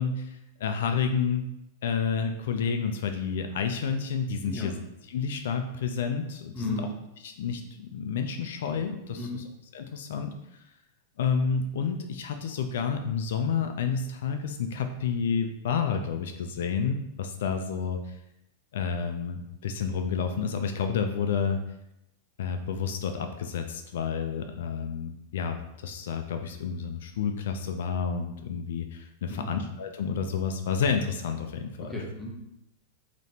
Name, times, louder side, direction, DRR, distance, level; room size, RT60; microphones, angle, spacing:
voice 1, 0.0-1.5 1.8-4.7 5.1-6.8 7.2-9.2 9.7-10.3 11.2-18.2 18.7-21.6 22.4-31.9, left 6 dB, 75° left, 6 dB, 0.4 m, -30 dB
voice 2, 4.4-4.8 6.5-7.0 9.1-9.5 29.3-29.5 31.8-32.4, left 1 dB, 5° left, -3 dB, 0.9 m, -35 dB
5.0 x 3.0 x 2.8 m, 0.85 s
supercardioid pair, 145°, 0 cm